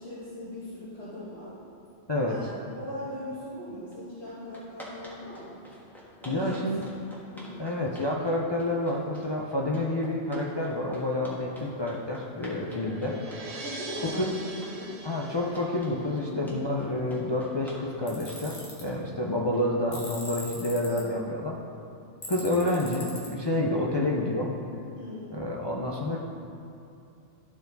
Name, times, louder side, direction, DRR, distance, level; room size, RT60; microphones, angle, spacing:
voice 1, 0.0-1.5 2.3-5.7 6.2-6.8 7.3-7.6 12.6-13.1 13.6-14.9 16.2-16.6 20.8-21.2 24.9-25.5, equal, 65° left, -13 dB, 2.4 m, -40 dB
sound 1, 3.9-4.0 4.3-19.8, equal, ahead, 1.4 m, -48 dB
voice 2, 6.2-6.8 7.6-13.1 14.2-14.3 15.0-21.5 22.3-24.5 25.3-26.2, left 1 dB, 35° left, -3 dB, 0.4 m, -29 dB
sound 2, 11.7-16.2, right 2 dB, 45° right, 0.5 m, -43 dB
Tools, 18.1-18.8 19.9-21.0 22.2-23.3, left 1 dB, 80° left, 1.6 m, -40 dB
12.0 x 4.5 x 4.0 m, 2.6 s
omnidirectional pair, 1.2 m